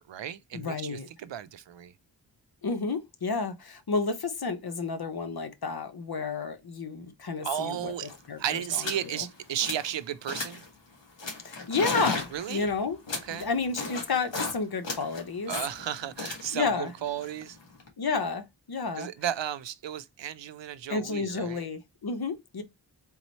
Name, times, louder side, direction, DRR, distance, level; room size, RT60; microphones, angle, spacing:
voice 1, 0.0-1.9 7.4-8.1 8.4-10.6 12.3-12.7 13.2-13.5 15.5-17.6 19.0-21.7, right 10 dB, 85° right, 0.5 m, -34 dB
voice 2, 0.5-1.1 2.6-7.9 8.3-9.3 11.4-13.0 13.3-15.5 16.5-16.9 18.0-19.1 20.9-22.6, left 4 dB, 60° left, 0.9 m, -31 dB
sound 1, 7.7-7.8 8.0-8.3 8.7-9.1 9.4-9.9 10.3-10.7 11.2-14.6 14.8-17.9, left 3 dB, 85° left, 1.5 m, -35 dB
3.8 x 3.1 x 4.0 m
wide cardioid pair, 80°, 43 cm